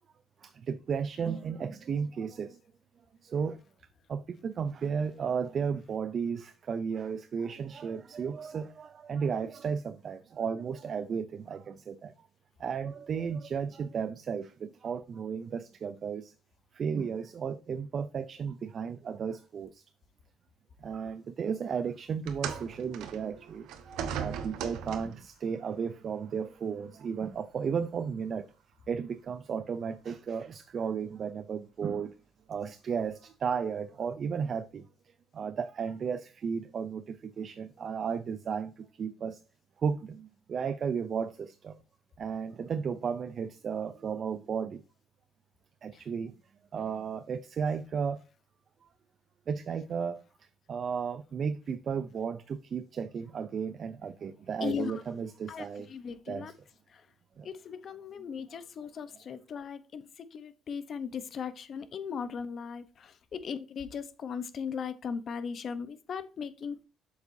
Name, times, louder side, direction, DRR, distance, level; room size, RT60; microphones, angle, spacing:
voice 1, 0.4-2.6 3.2-3.6 4.1-12.1 12.6-16.3 16.7-19.8 20.8-28.4 28.9-32.1 32.5-34.8 35.3-39.4 39.8-41.8 42.2-44.8 45.8-46.3 46.7-48.2 49.5-50.2 50.7-55.9 56.3-56.5 57.4-57.5, right 6 dB, 40° right, 0.4 m, -34 dB
sound 1, 22.3-25.3 26.3-26.5 27.3-27.4, right 7 dB, 85° right, 1.1 m, -38 dB
voice 2, 54.6-55.0 55.5-56.5 56.9-57.1 57.4-66.8, left 6 dB, 45° left, 0.8 m, -38 dB
8.2 x 7.1 x 2.7 m
cardioid pair, 140°, 0 cm